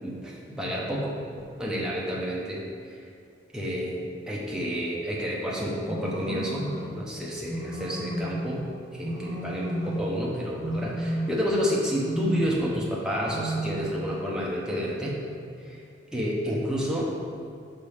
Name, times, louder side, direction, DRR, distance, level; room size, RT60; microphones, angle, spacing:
voice 1, 0.0-1.2 1.6-2.6 2.9-3.0 3.5-15.2 15.6-15.8 16.1-17.1, equal, 5° right, -4 dB, 0.8 m, -30 dB
sound 1, 5.8-6.9 7.4-8.5 9.0-10.1 10.5-11.6 12.0-12.7 13.2-14.0, right 1 dB, 20° left, 1.2 m, -32 dB
6.0 x 5.6 x 3.4 m, 2.5 s
head